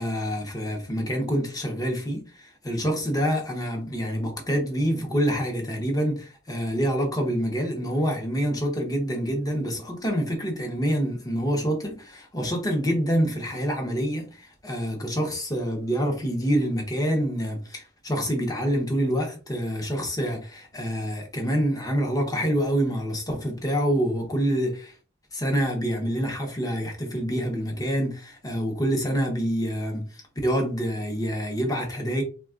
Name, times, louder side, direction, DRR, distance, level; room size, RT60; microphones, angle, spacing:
voice 1, 0.0-24.9 25.3-32.2, equal, 20° left, 0.7 m, -26 dB
3.4 x 2.2 x 2.4 m
head